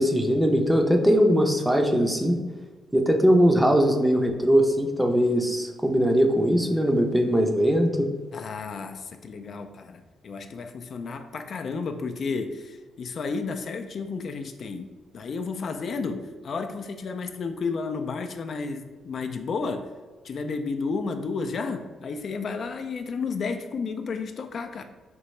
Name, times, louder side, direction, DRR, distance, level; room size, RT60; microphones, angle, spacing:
voice 1, 0.0-2.4 2.9-8.1, equal, 5° right, 3 dB, 0.5 m, -21 dB
voice 2, 8.3-14.9 15.1-19.9 20.2-24.8, left 4 dB, 50° left, 6 dB, 0.3 m, -32 dB
5.2 x 2.8 x 3.1 m, 1.3 s
cardioid pair, 125°, 0 cm